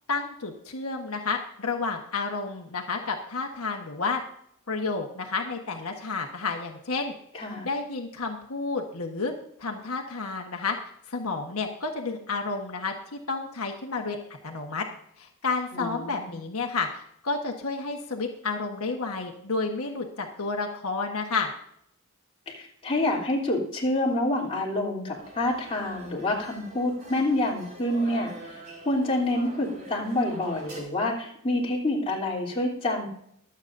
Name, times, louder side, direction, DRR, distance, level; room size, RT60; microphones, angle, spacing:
voice 1, 0.1-4.2 4.7-7.1 7.6-9.3 9.6-10.8 11.1-12.9 13.3-14.2 14.4-14.8 15.2-21.5, left 4 dB, 80° left, 2 dB, 1.3 m, -30 dB
voice 2, 7.3-7.7 15.7-16.4 22.5-33.1, left 1 dB, 25° left, -3 dB, 3.3 m, -27 dB
sound 1, 25.2-30.8, right 1 dB, 45° right, 4.7 m, -45 dB
23.5 x 8.2 x 2.6 m, 0.71 s
head